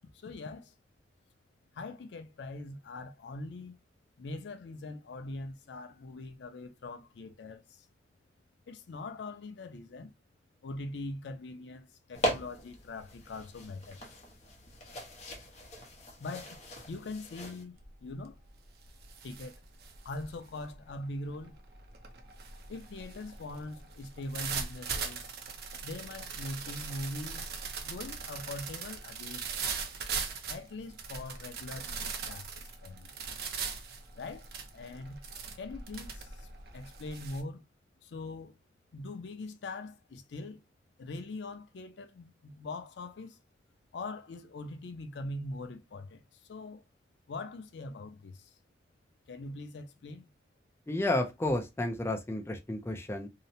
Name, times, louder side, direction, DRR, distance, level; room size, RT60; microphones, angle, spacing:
voice 1, 0.1-0.7 1.7-3.8 4.2-7.9 8.7-10.1 10.6-14.0 16.2-16.6 16.9-18.4 19.2-19.6 20.0-21.6 22.7-25.3 25.8-27.4 27.8-29.5 30.5-33.1 34.1-35.2 35.6-36.5 36.7-37.6 38.0-38.5 38.9-40.6 41.0-43.4 43.9-46.8 47.3-48.6 49.3-50.2, left 2 dB, 80° left, 0.4 m, -42 dB
sound 1, 12.1-17.6, equal, 40° left, 0.7 m, -39 dB
sound 2, 17.8-18.1 18.5-37.4, right 5 dB, 60° right, 0.5 m, -40 dB
voice 2, 50.9-53.3, left 1 dB, 15° left, 0.3 m, -31 dB
2.8 x 2.0 x 2.6 m
head